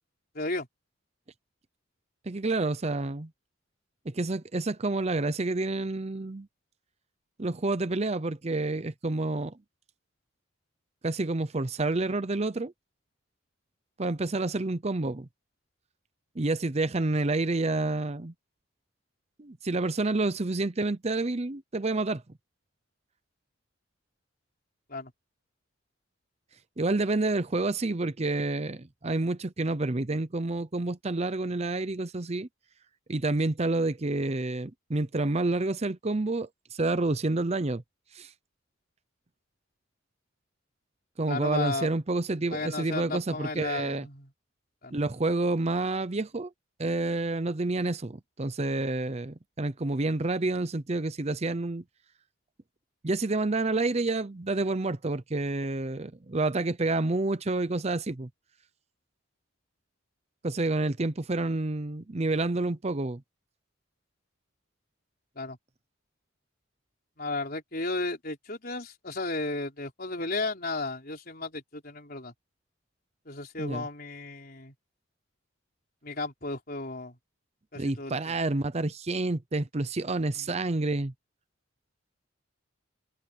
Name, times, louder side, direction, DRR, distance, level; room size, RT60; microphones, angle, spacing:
voice 1, 0.3-0.7 24.9-25.1 41.3-41.9 42.5-44.3 44.8-44.9 65.4-65.6 67.2-72.3 73.3-74.7 76.0-77.2 77.7-78.3 80.3-80.5, left 2 dB, 45° left, 4.3 m, -34 dB
voice 2, 2.3-3.3 4.1-6.5 7.4-9.5 11.0-12.7 14.0-15.3 16.4-18.3 19.4-22.2 26.8-32.5 33.1-37.8 38.1-38.3 41.2-44.1 44.9-46.5 46.8-51.8 53.0-58.3 60.4-63.2 73.6-73.9 77.7-81.1, right 2 dB, 30° right, 0.7 m, -29 dB
head